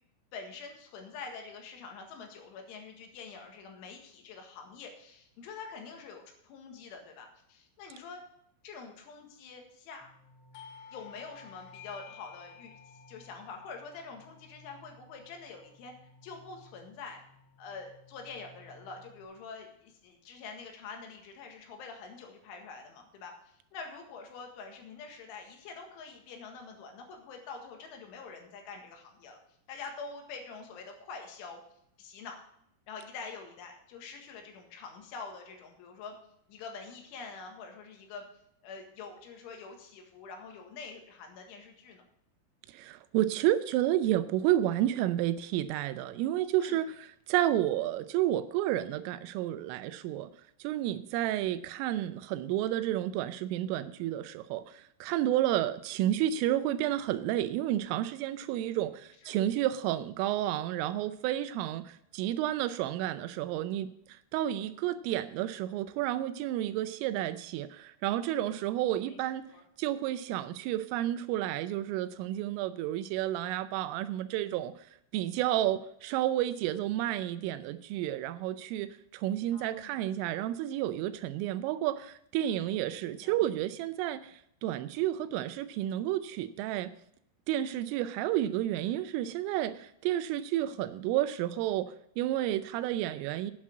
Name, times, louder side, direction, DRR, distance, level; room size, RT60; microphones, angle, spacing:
voice 1, 0.3-8.2 8.6-10.1 10.9-12.7 13.1-15.9 16.2-17.2 17.6-29.4 29.7-31.6 32.0-32.4 32.9-36.2 36.5-38.2 38.6-42.0 46.6-46.8 59.2-59.4 69.0-69.2 69.5-69.6 79.5-80.0 83.2-83.4 90.6-90.8, left 5 dB, 70° left, 3 dB, 4.0 m, -46 dB
sound 1, 10.0-19.2, left 1 dB, ahead, 3.1 m, -60 dB
Doorbell, 10.5-15.8, left 7 dB, 85° left, 3.6 m, -53 dB
voice 2, 42.7-50.3 50.6-69.4 69.8-74.9 75.1-86.9 87.5-93.5, right 13 dB, 85° right, 12 dB, 3.1 m, -31 dB
8.8 x 8.5 x 7.3 m, 0.71 s
omnidirectional pair, 6.0 m